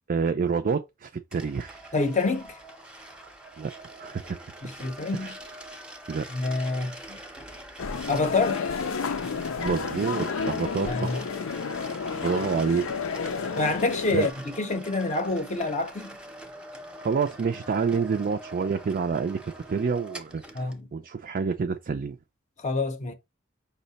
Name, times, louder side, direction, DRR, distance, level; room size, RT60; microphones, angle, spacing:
voice 1, 0.1-1.9 3.6-3.7 4.0-4.2 5.1-5.3 6.1-6.3 9.6-11.2 12.2-12.9 14.1-14.3 17.0-19.4 19.7-20.6 20.9-22.2, right 5 dB, 45° right, 0.4 m, -28 dB
sound 1, 1.3-20.8, right 1 dB, 5° right, 0.7 m, -44 dB
voice 2, 1.9-2.6 4.6-5.4 6.3-7.2 8.1-8.7 10.9-11.2 13.6-14.3 14.6-16.2 20.5-20.9 22.6-23.1, left 3 dB, 35° left, 0.6 m, -27 dB
sound 2, 7.8-14.3, left 5 dB, 85° left, 0.5 m, -31 dB
5.5 x 2.2 x 3.9 m
head